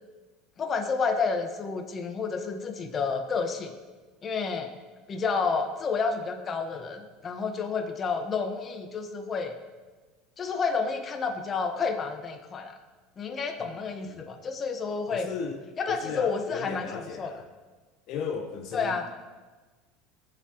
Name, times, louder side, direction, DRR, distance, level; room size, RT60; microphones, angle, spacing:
voice 1, 0.6-3.7 4.2-4.7 5.1-9.5 10.4-12.7 13.2-15.3 15.8-17.3 18.7-19.1, left 5 dB, 35° left, 5 dB, 1.3 m, -30 dB
voice 2, 15.1-15.6 15.9-17.4 18.1-19.1, left 6 dB, 60° left, 4 dB, 0.9 m, -36 dB
17.0 x 7.6 x 3.0 m, 1.3 s
supercardioid pair, 100°, 0 cm